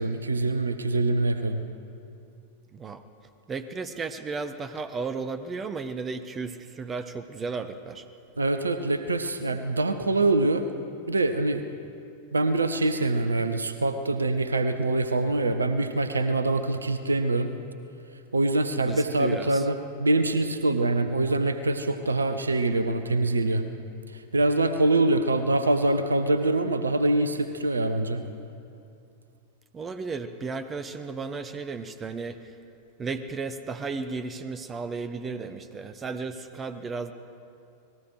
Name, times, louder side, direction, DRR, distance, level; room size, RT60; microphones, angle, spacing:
voice 1, 0.0-1.6 8.4-10.7 11.1-11.6 12.3-17.5 18.3-23.7 24.3-28.2, right 2 dB, 75° right, 10 dB, 1.1 m, -24 dB
voice 2, 2.7-3.0 3.5-8.0 18.8-19.6 29.7-32.4 33.0-37.1, right 4 dB, 20° right, 11 dB, 1.0 m, -34 dB
29.5 x 20.0 x 4.8 m, 2.6 s
figure-of-eight pair, 90°, 0 cm